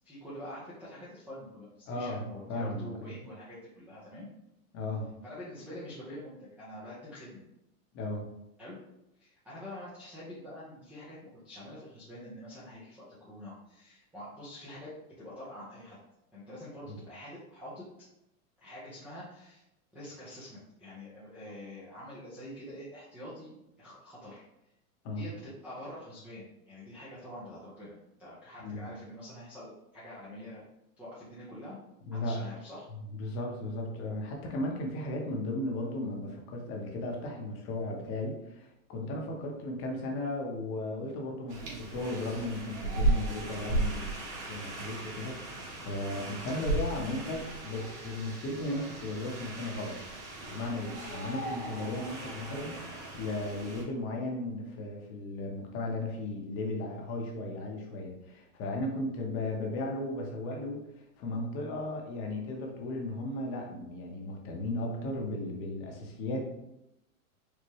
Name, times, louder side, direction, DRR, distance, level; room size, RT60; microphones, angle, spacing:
voice 1, 0.0-4.3 5.2-7.4 8.6-8.8 9.2-16.0 16.3-17.9 18.6-19.6 19.9-24.4 25.1-30.6 31.0-31.8 32.1-32.9, left 1 dB, 5° right, -10 dB, 0.4 m, -46 dB
voice 2, 1.9-2.2 2.5-3.1 4.7-5.1 7.9-8.3 16.9-17.0 25.0-25.3 28.6-28.9 32.1-32.4 33.1-44.1 44.5-66.5, left 2 dB, 30° left, 1 dB, 0.8 m, -36 dB
sound 1, 41.5-53.8, right 2 dB, 55° right, 1.4 m, -36 dB
4.6 x 2.1 x 3.0 m, 0.86 s
hypercardioid pair, 130°, 44 cm